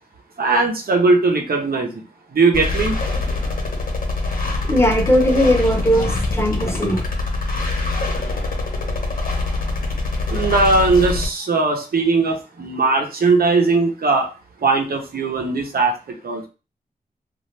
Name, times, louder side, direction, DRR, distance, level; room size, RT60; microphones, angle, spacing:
voice 1, 0.4-1.9 2.3-3.0 10.3-14.3 14.6-16.5, right 3 dB, 80° right, 2 dB, 0.9 m, -19 dB
sound 1, 2.5-11.3, left 3 dB, 65° left, 1.0 m, -24 dB
voice 2, 4.6-7.0, equal, 15° left, 3 dB, 0.9 m, -18 dB
2.8 x 2.5 x 3.2 m, 0.31 s
cardioid pair, 55°, 15 cm